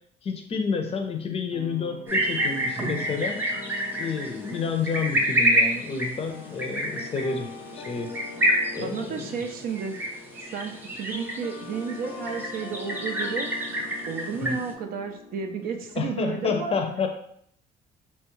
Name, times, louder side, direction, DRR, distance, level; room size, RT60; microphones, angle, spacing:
voice 1, 0.2-3.4 4.0-7.5 7.7-8.1 8.7-9.3 14.3-14.6 16.0-17.1, left 5 dB, 35° left, 5 dB, 0.5 m, -29 dB
sound 1, 1.5-15.9, left 4 dB, 90° left, 0.5 m, -43 dB
sound 2, 2.1-14.7, equal, 10° right, 0.6 m, -28 dB
voice 2, 8.8-10.0 10.4-13.5 14.1-16.7, right 6 dB, 60° right, 5 dB, 0.5 m, -32 dB
3.1 x 2.3 x 3.0 m, 0.65 s
cardioid pair, 110°, 17 cm